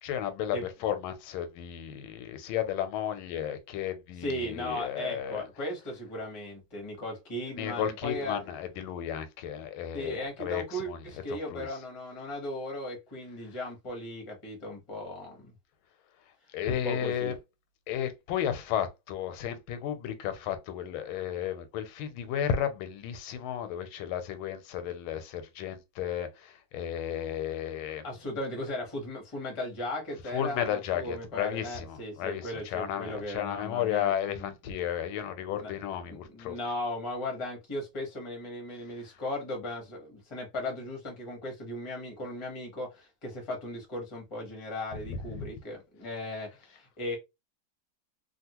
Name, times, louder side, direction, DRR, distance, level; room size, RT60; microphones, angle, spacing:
voice 1, 0.0-0.6 0.8-5.4 7.6-11.0 11.3-11.7 16.5-17.3 17.9-28.0 30.3-36.6 45.1-45.5, left 9 dB, 90° left, 1.5 m, -33 dB
voice 2, 4.2-8.4 9.9-15.5 16.6-17.4 28.0-34.5 35.5-35.7 36.1-47.2, left 1 dB, 30° left, 0.6 m, -37 dB
3.3 x 2.3 x 2.9 m
omnidirectional pair, 2.2 m